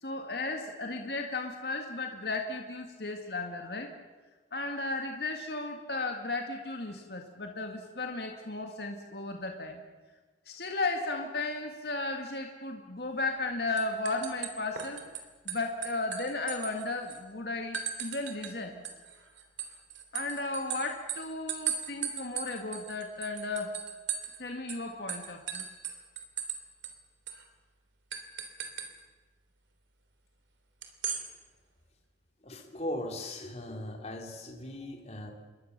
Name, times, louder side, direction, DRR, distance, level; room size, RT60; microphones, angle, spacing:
voice 1, 0.0-3.9 4.5-9.8 10.5-15.0 15.5-18.8 20.1-23.8 24.4-25.6, left 3 dB, 60° left, 3 dB, 2.1 m, -35 dB
sound 1, 13.2-13.5 13.8-15.2 15.5-17.2 17.7-18.5 18.8-24.4 24.7-24.8 25.1-26.6 26.8-26.9 27.3-27.4 28.1-28.9 30.8-31.2, right 8 dB, 90° right, 3.2 m, -37 dB
voice 2, 32.4-35.3, left 1 dB, 35° left, 2 dB, 3.2 m, -38 dB
27.5 x 22.5 x 6.8 m, 1.3 s
head